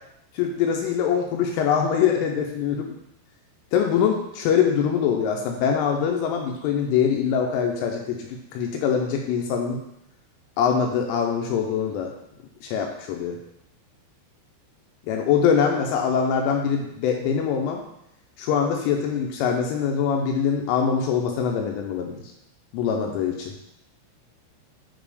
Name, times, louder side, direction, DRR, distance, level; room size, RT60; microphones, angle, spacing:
voice 1, 0.3-2.9 3.7-8.3 8.5-9.8 10.6-12.1 12.6-13.4 15.1-17.8 18.4-22.2 22.7-23.5, left 7 dB, 85° left, 2 dB, 3.0 m, -23 dB
8.3 x 3.4 x 4.8 m, 0.79 s
omnidirectional pair, 6.0 m